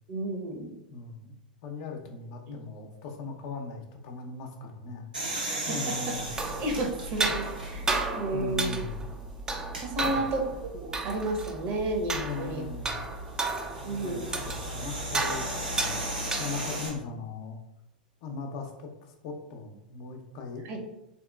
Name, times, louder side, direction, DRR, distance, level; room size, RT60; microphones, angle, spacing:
voice 1, 0.1-0.7 2.5-2.6 5.4-8.8 9.8-12.6 13.8-14.3 20.6-20.8, right 2 dB, 45° right, 2 dB, 0.8 m, -32 dB
voice 2, 0.9-5.1 5.7-6.3 8.3-9.0 10.0-10.3 12.1-13.1 13.7-16.0 16.4-17.6 18.2-20.7, left 4 dB, 50° left, 3 dB, 0.6 m, -39 dB
sound 1, 5.1-8.1 8.6-8.7 9.6-9.9 12.0-16.9, right 1 dB, 90° right, 1.0 m, -37 dB
sound 2, 6.2-16.9, right 2 dB, 15° right, 0.4 m, -33 dB
3.5 x 2.9 x 2.3 m, 0.87 s
figure-of-eight pair, 95°, 5 cm